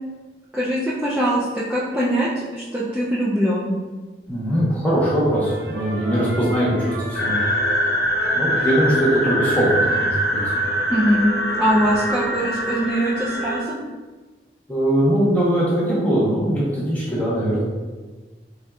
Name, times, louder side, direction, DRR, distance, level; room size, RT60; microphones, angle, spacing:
voice 1, 0.5-2.3 2.6-3.7 10.9-11.3 11.6-13.8, equal, 5° right, -9 dB, 0.4 m, -22 dB
voice 2, 4.3-7.4 8.3-10.6 11.7-11.8 14.7-17.6, equal, 10° left, -8 dB, 1.1 m, -21 dB
sound 1, 5.4-12.0, right 1 dB, 70° right, 0.7 m, -35 dB
sound 2, 7.1-13.6, equal, 75° left, 0.7 m, -23 dB
4.4 x 3.2 x 2.4 m, 1.3 s
head